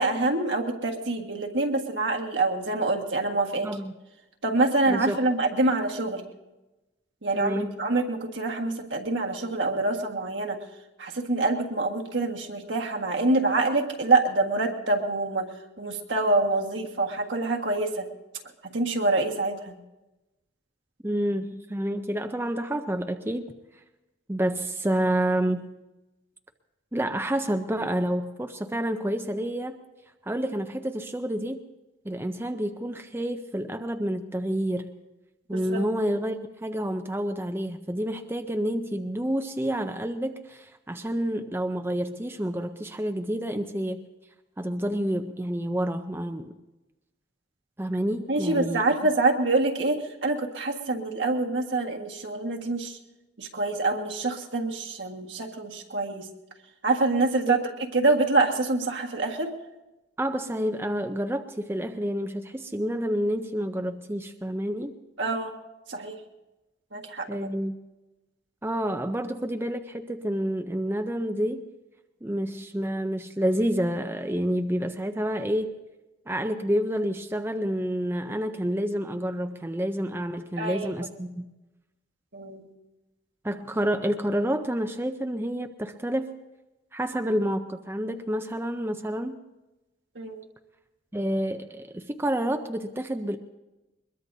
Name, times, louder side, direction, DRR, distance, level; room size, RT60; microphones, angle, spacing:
voice 1, 0.0-3.7 4.4-6.2 7.2-10.6 11.0-15.5 15.8-18.1 18.6-19.7 35.5-35.8 48.3-53.0 53.4-56.3 56.8-57.6 57.9-59.5 65.2-65.5 65.9-66.2 66.9-67.5 80.6-80.9 82.3-82.7 90.1-90.4, right 2 dB, 75° right, 2 dB, 1.7 m, -26 dB
voice 2, 3.6-4.0 4.9-5.2 7.3-7.8 21.0-23.5 24.3-25.7 26.9-29.8 30.2-31.6 32.0-35.0 35.5-44.0 44.6-46.5 47.8-48.9 57.4-57.6 60.2-65.0 67.3-67.7 68.6-71.6 72.2-75.7 76.3-81.5 83.4-86.3 86.9-89.4 91.1-93.4, right 1 dB, 10° right, 6 dB, 0.5 m, -29 dB
22.0 x 21.5 x 2.7 m, 1.0 s
head